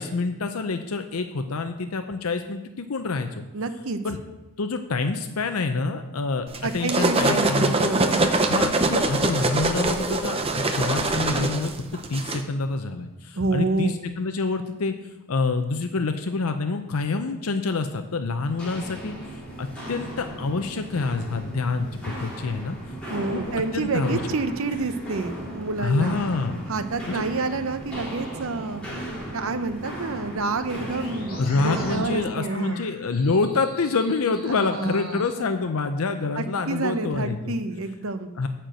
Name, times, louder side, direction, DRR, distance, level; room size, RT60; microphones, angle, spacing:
voice 1, 0.0-3.4 4.0-4.2 4.6-6.5 6.7-8.0 8.5-11.7 12.1-14.9 15.3-22.8 23.3-24.2 25.8-26.7 27.1-27.3 31.4-37.6 38.4-38.5, left 3 dB, 70° left, 7 dB, 0.6 m, -27 dB
voice 2, 3.5-4.0 6.6-8.4 13.3-14.0 23.1-26.2 26.7-28.8 29.3-32.8 34.5-35.5 36.4-38.3, right 3 dB, 65° right, 9 dB, 0.7 m, -28 dB
sound 1, 6.5-12.4, right 2 dB, 25° right, 0.7 m, -23 dB
Walk footsteps, 18.4-32.2, right 1 dB, 5° left, 3.2 m, -36 dB
sound 2, 30.9-35.3, left 1 dB, 40° left, 2.5 m, -42 dB
10.0 x 4.5 x 7.7 m, 1.0 s
head